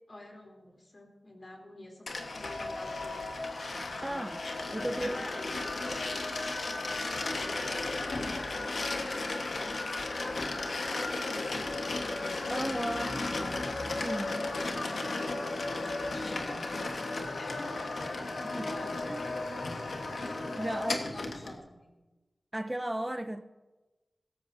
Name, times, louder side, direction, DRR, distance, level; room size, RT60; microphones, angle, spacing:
voice 1, 0.1-4.2 4.5-6.2 6.6-12.6 14.2-17.0 17.3-20.1 20.6-20.9 21.1-21.9, left 1 dB, 50° left, 3.2 m, -49 dB
sound 1, 2.1-21.5, left 2 dB, 85° left, 1.4 m, -34 dB
voice 2, 4.0-4.4 4.7-5.2 12.5-13.3 14.0-14.4 16.5-16.6 18.4-18.7 19.1-19.2 20.6-21.0 22.5-23.4, right 1 dB, 15° right, 0.6 m, -35 dB
17.0 x 14.0 x 2.7 m
cardioid pair, 50°, 0 cm